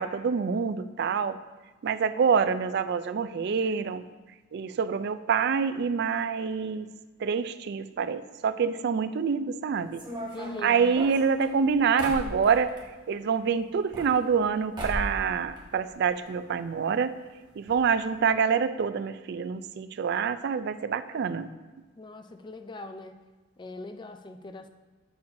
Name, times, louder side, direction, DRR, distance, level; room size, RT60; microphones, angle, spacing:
voice 1, 0.0-1.4 1.8-4.0 4.5-6.9 7.2-10.0 10.6-12.8 13.1-17.1 17.6-21.5, right 6 dB, 60° right, 12 dB, 0.3 m, -26 dB
sound 1, 9.9-12.9 13.7-14.5 14.8-15.2 15.5-16.3 16.6-16.7 16.9-17.0 17.7-17.8 18.1-18.3, equal, 25° right, 1.3 m, -37 dB
voice 2, 10.3-10.8 22.0-23.2 23.6-24.7, left 2 dB, 25° left, 7 dB, 0.4 m, -41 dB
6.9 x 6.9 x 2.6 m, 1.3 s
head